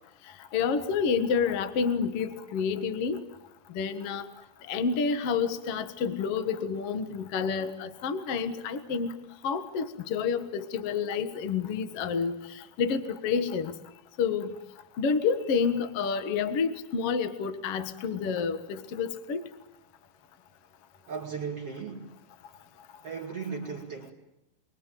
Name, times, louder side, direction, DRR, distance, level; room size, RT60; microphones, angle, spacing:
voice 1, 0.5-3.2 3.7-4.3 4.6-9.2 9.4-13.8 14.2-14.6 15.0-19.4, left 6 dB, 50° left, 10 dB, 2.2 m, -29 dB
voice 2, 21.1-22.2 23.0-24.1, right 5 dB, 45° right, -2 dB, 3.3 m, -36 dB
28.0 x 22.5 x 9.2 m, 0.93 s
omnidirectional pair, 3.9 m